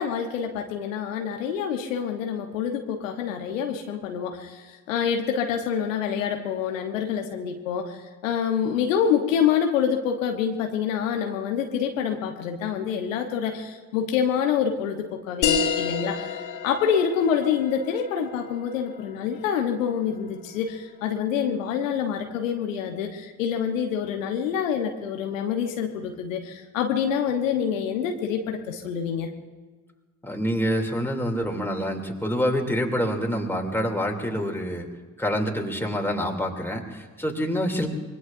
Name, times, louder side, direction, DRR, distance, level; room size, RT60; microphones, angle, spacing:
voice 1, 0.0-29.3, left 7 dB, 80° left, 4 dB, 1.2 m, -26 dB
sound 1, 15.4-20.5, left 7 dB, 50° left, 2.6 m, -30 dB
voice 2, 30.2-34.9 35.2-37.9, equal, 5° left, 1 dB, 2.9 m, -26 dB
25.0 x 21.5 x 2.6 m, 1.4 s
figure-of-eight pair, 45°, 39 cm